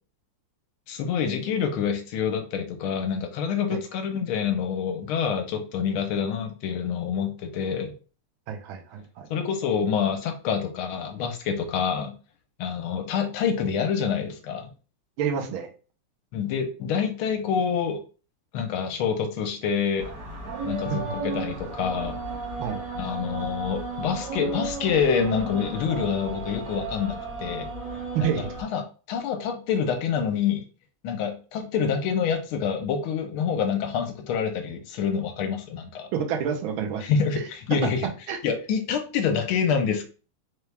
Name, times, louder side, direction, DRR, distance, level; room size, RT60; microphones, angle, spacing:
voice 1, 0.9-7.9 9.3-12.1 12.6-14.7 16.3-18.0 18.5-20.1 20.6-22.2 23.0-27.7 28.2-28.3 28.6-28.8 29.1-30.6 31.0-36.1 37.0-37.4 37.7-38.1 38.4-40.0, left 7 dB, 80° left, 5 dB, 1.5 m, -27 dB
voice 2, 8.5-9.3 15.2-15.7 20.8-21.1 22.6-22.8 28.1-28.5 36.1-37.0 37.4-37.5 38.3-38.4, right 7 dB, 75° right, 3 dB, 1.5 m, -28 dB
sound 1, 20.0-28.6, right 3 dB, 55° right, 1.7 m, -34 dB
4.3 x 2.3 x 3.3 m, 0.36 s
omnidirectional pair, 2.4 m